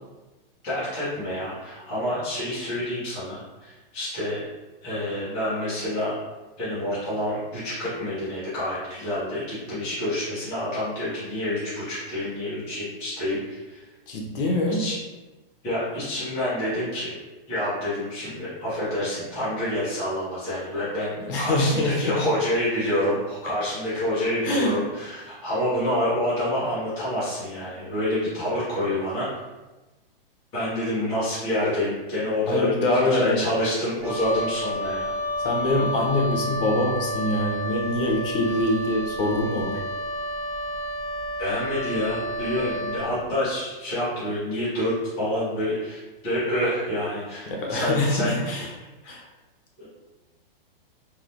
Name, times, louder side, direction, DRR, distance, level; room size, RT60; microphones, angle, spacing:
voice 1, 0.6-4.4 4.8-6.2 6.6-13.8 14.8-14.9 15.6-17.1 17.5-29.3 30.5-35.1 41.4-48.4 49.8-49.9, left 1 dB, 10° left, -12 dB, 0.4 m, -28 dB
voice 2, 14.1-14.8 21.3-22.3 24.4-24.7 32.5-33.4 35.4-39.8 47.5-48.7 49.1-49.2, left 1 dB, 70° left, -1 dB, 0.8 m, -24 dB
Wind instrument woodwind instrument, 34.0-43.1, equal, 35° right, 0.9 m, -30 dB
3.0 x 2.0 x 2.5 m, 1.1 s
supercardioid pair, 170°, 29 cm